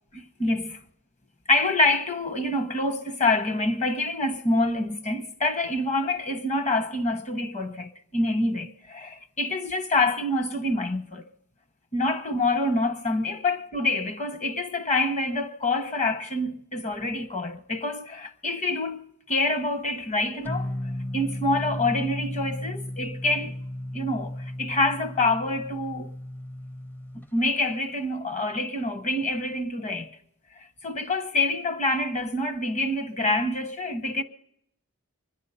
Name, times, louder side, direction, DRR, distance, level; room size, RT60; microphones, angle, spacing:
voice 1, 0.4-0.8 1.5-11.2 11.9-19.0 19.3-20.7 21.1-23.6 23.9-26.1 27.3-30.2 30.6-34.2, left 2 dB, 35° left, 1.0 m, -26 dB
sound 1, 20.4-27.3, left 1 dB, 10° left, 0.5 m, -35 dB
24.0 x 10.0 x 5.6 m
head